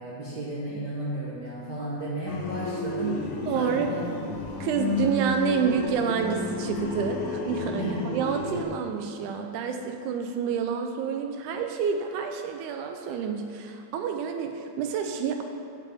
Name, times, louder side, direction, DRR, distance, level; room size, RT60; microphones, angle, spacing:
voice 1, 0.0-3.3 3.5-4.0 7.8-8.0, right 1 dB, 60° right, -8 dB, 1.1 m, -33 dB
sound 1, 2.3-8.6, left 3 dB, 85° left, 2.3 m, -32 dB
voice 2, 3.5-4.0 4.6-15.4, right 6 dB, 85° right, 5 dB, 2.0 m, -28 dB
9.9 x 7.5 x 3.5 m, 2.8 s
omnidirectional pair, 3.5 m